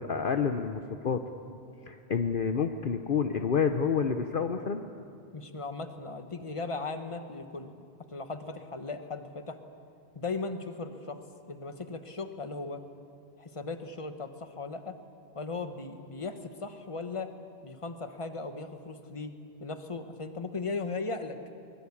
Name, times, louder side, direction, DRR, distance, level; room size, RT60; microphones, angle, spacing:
voice 1, 0.1-1.2 1.9-4.8, left 6 dB, 55° left, 7 dB, 1.0 m, -28 dB
voice 2, 5.3-7.8 8.1-9.6 10.1-11.2 11.5-12.8 13.4-15.0 15.3-17.3 17.6-19.3 19.6-21.4, left 3 dB, 30° left, 8 dB, 1.3 m, -37 dB
23.5 x 20.5 x 8.6 m, 2.5 s
omnidirectional pair, 1.1 m